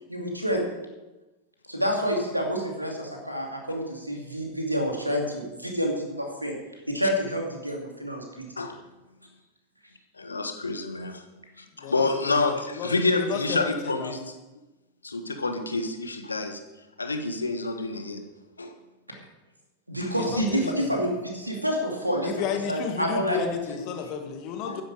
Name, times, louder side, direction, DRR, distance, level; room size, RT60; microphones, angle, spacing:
voice 1, 0.1-0.6 1.7-6.5 6.9-8.5 19.9-22.3 22.7-23.4, equal, 90° right, 1 dB, 2.6 m, -28 dB
voice 2, 10.2-11.2 11.6-14.3 15.0-16.6 17.0-18.2 18.6-18.7 20.0-20.1 24.6-24.8, left 3 dB, 80° left, 6 dB, 1.4 m, -28 dB
voice 3, 11.8-12.4 12.7-12.9 13.2-14.2 20.2-20.9 22.2-24.8, left 7 dB, 40° left, 5 dB, 1.7 m, -32 dB
13.0 x 10.5 x 4.9 m, 1.1 s
figure-of-eight pair, 90°, 0 cm